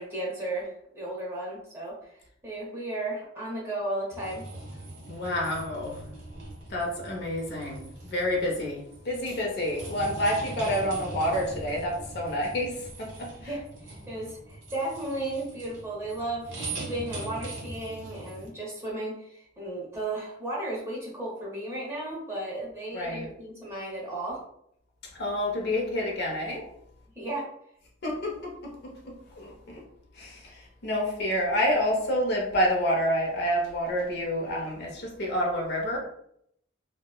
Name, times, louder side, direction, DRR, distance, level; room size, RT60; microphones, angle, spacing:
voice 1, 0.0-4.4 13.4-24.4 27.2-27.5, right 1 dB, 15° right, -6 dB, 0.7 m, -34 dB
sound 1, 4.1-18.5, right 2 dB, 60° right, 1.3 m, -41 dB
voice 2, 5.1-6.0 6.7-13.5 22.9-23.3 25.1-26.6 28.0-29.8 30.1-36.0, equal, 55° left, -1 dB, 0.6 m, -29 dB
2.8 x 2.1 x 2.2 m, 0.72 s
head